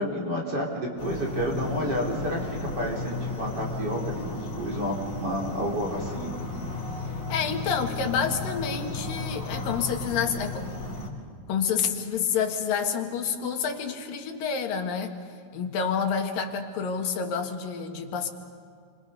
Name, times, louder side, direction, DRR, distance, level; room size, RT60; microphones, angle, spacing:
voice 1, 0.0-6.3, equal, 30° right, -2 dB, 4.5 m, -30 dB
sound 1, 1.0-11.1, left 2 dB, 65° left, 5.6 m, -34 dB
voice 2, 7.3-10.7 11.5-15.2 15.5-18.3, left 6 dB, 85° left, 4 dB, 3.4 m, -28 dB
29.0 x 26.5 x 5.4 m, 2.3 s
omnidirectional pair, 3.9 m